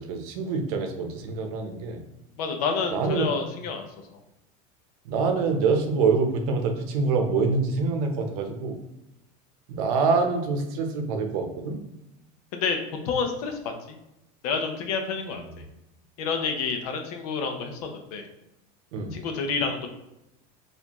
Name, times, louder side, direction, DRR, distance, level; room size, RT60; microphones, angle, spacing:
voice 1, 0.0-2.0 2.9-3.3 5.0-8.8 9.7-11.8 15.3-15.4 18.9-19.2, right 4 dB, 70° right, 5 dB, 0.7 m, -25 dB
voice 2, 2.4-3.9 12.5-12.8 13.0-14.0 14.4-15.4 16.2-18.3 19.1-19.9, left 5 dB, 75° left, 5 dB, 0.7 m, -29 dB
4.2 x 2.6 x 2.9 m, 0.88 s
supercardioid pair, 145°, 19 cm